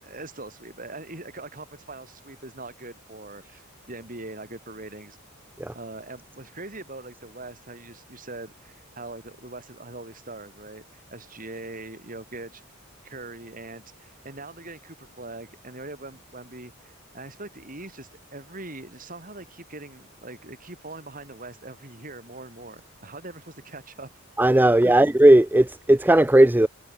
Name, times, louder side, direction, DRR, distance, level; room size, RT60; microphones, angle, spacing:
voice 1, 0.0-5.2 5.7-12.6 13.0-24.1 24.6-25.0, right 2 dB, 40° right, 5.5 m, -42 dB
voice 2, 24.4-26.7, right 1 dB, 10° right, 0.5 m, -16 dB
head